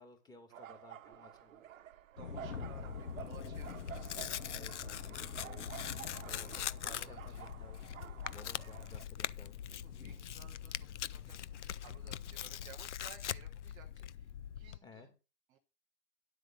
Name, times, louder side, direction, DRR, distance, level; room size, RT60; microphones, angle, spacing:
voice 1, 0.0-1.6 4.5-5.8 6.2-7.8 8.3-9.5 14.8-15.1, left 3 dB, 10° left, 4 dB, 2.5 m, -57 dB
sound 1, 0.5-9.0, right 11 dB, 55° right, 1.0 m, -51 dB
voice 2, 2.1-3.8 6.2-7.5 9.8-15.1 15.5-15.6, right 8 dB, 10° right, 2 dB, 0.6 m, -58 dB
sound 2, 2.2-12.8, left 5 dB, 70° left, 2.7 m, -49 dB
Tearing, 2.4-14.8, left 10 dB, 50° left, 0.6 m, -43 dB
11.5 x 7.9 x 3.9 m, 0.30 s
hypercardioid pair, 135°, 48 cm